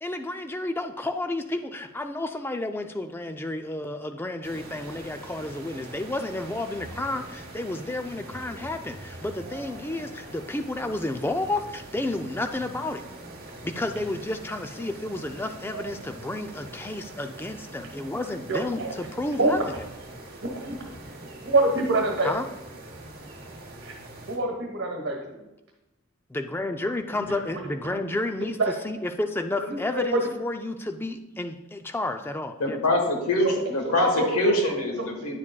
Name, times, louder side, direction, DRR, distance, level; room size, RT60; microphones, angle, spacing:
voice 1, 0.0-13.0 13.6-19.6 22.2-22.4 26.3-28.6 28.8-32.8, left 2 dB, 10° left, 6 dB, 0.3 m, -31 dB
sound 1, 4.4-24.4, right 2 dB, 45° right, 1.1 m, -43 dB
voice 2, 18.5-18.9 19.4-19.7 20.4-20.7 21.4-22.3 23.8-23.9 24.3-25.4 27.1-27.9 28.4-28.7 29.7-30.3 34.0-34.4, right 2 dB, 65° right, 0 dB, 1.3 m, -26 dB
voice 3, 32.6-35.4, left 1 dB, 85° left, 2 dB, 1.3 m, -24 dB
9.7 x 7.2 x 2.3 m, 0.99 s
head